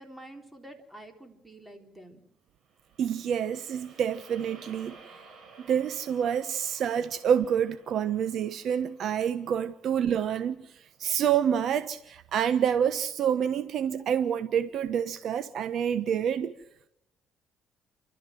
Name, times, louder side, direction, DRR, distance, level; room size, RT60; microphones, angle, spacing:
voice 1, 0.0-2.2, right 1 dB, 5° right, 4 dB, 4.0 m, -48 dB
sound 1, 2.6-11.0, right 4 dB, 45° right, 6.8 m, -55 dB
voice 2, 3.0-4.9 5.6-10.6 11.0-16.5, right 8 dB, 60° right, 11 dB, 1.2 m, -27 dB
29.5 x 13.0 x 7.8 m, 0.79 s
cardioid pair, 100°, 0 cm